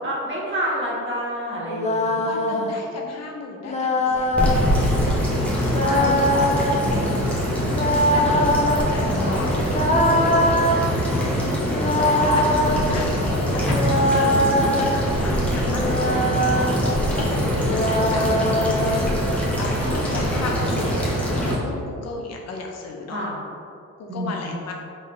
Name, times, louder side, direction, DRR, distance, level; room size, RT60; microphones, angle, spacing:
voice 1, 0.0-2.7 5.8-7.6 8.3-8.5 10.7-10.9 23.1-23.3 24.1-24.6, equal, 40° right, -6 dB, 1.5 m, -30 dB
sound 1, 1.7-2.7 3.7-4.6 5.7-6.9 7.7-8.9 9.7-10.8 11.7-12.8 13.7-15.0 15.7-16.7 17.7-19.1, left 1 dB, 20° left, 0.5 m, -22 dB
voice 2, 2.2-4.9 7.9-9.7 10.0-10.6 11.7-23.2 24.0-24.7, left 3 dB, 60° left, 0 dB, 0.7 m, -35 dB
sound 2, 4.1-21.5, equal, 5° left, 1.1 m, -23 dB
3.9 x 3.7 x 3.3 m, 2.5 s
cardioid pair, 90°, 30 cm